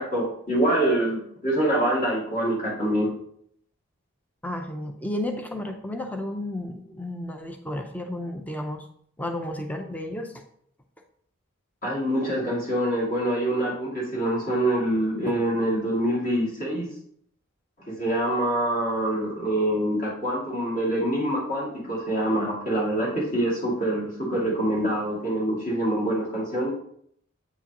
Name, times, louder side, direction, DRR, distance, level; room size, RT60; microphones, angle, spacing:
voice 1, 0.0-3.1 11.8-16.9 17.9-26.7, right 1 dB, 40° left, -4 dB, 2.2 m, -25 dB
voice 2, 4.4-8.8 9.2-10.3, left 1 dB, 5° left, 4 dB, 0.5 m, -32 dB
7.9 x 4.8 x 2.9 m, 0.66 s
head